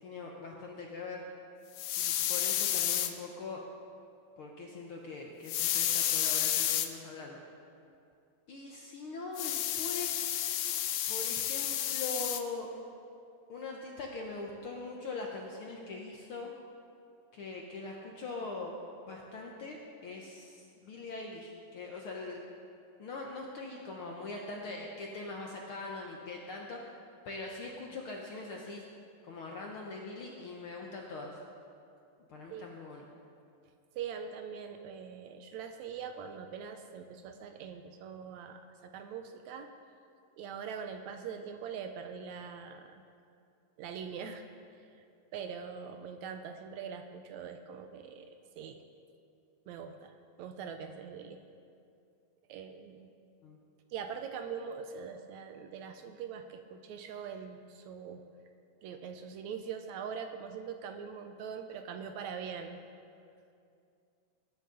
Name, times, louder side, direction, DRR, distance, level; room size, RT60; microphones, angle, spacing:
voice 1, 0.0-1.2 2.0-3.7 4.4-7.4 8.5-10.3 11.1-12.7 13.5-16.5 17.3-18.8 19.1-22.4 23.0-26.9 27.2-28.9 29.2-31.4 32.3-33.1 53.4-53.6, left 3 dB, 65° left, 0 dB, 1.4 m, -42 dB
sound 1, 1.8-3.1 5.5-6.9 9.4-12.4, left 11 dB, 80° left, 2.1 m, -31 dB
voice 2, 34.0-39.7 40.4-43.0 43.8-44.5 45.3-48.3 48.6-48.8 49.7-51.4 52.5-53.1 53.9-58.2 58.8-62.8, right 6 dB, 80° right, 7 dB, 1.8 m, -42 dB
20.5 x 10.5 x 3.9 m, 2.5 s
omnidirectional pair, 3.5 m